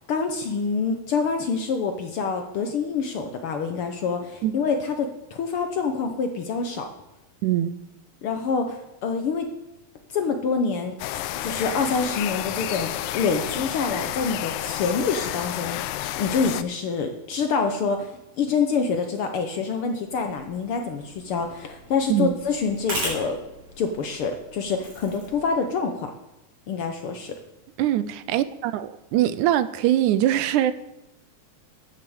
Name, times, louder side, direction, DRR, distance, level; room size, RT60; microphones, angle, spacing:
voice 1, 0.0-6.9 8.2-9.5 10.1-11.0 11.4-15.8 16.2-23.4 23.8-26.1 26.7-27.3, left 5 dB, 65° left, 1.5 m, -26 dB
voice 2, 7.4-7.8 22.1-22.4 27.8-30.7, right 12 dB, 85° right, 2.1 m, -22 dB
sound 1, 11.0-16.6, left 13 dB, 90° left, 2.1 m, -30 dB
sound 2, 20.1-25.5, equal, 55° right, 6.7 m, -38 dB
10.5 x 8.8 x 7.9 m
omnidirectional pair, 3.4 m